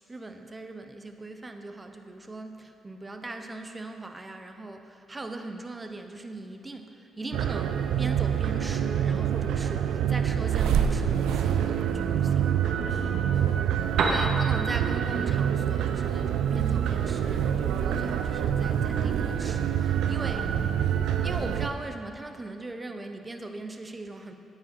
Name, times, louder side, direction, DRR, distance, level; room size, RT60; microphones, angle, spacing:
voice 1, 0.1-12.4 14.0-20.4 21.2-24.3, right 2 dB, 20° right, 6 dB, 0.8 m, -39 dB
sound 1, 7.3-21.7, right 9 dB, 80° right, 0.5 m, -26 dB
voice 2, 12.1-13.8 20.1-21.1, right 2 dB, 50° right, -3 dB, 1.8 m, -43 dB
Piano, 13.7-21.7, right 3 dB, 65° right, 1.1 m, -37 dB
9.3 x 8.9 x 4.5 m, 2.7 s
cardioid pair, 90°, 0 cm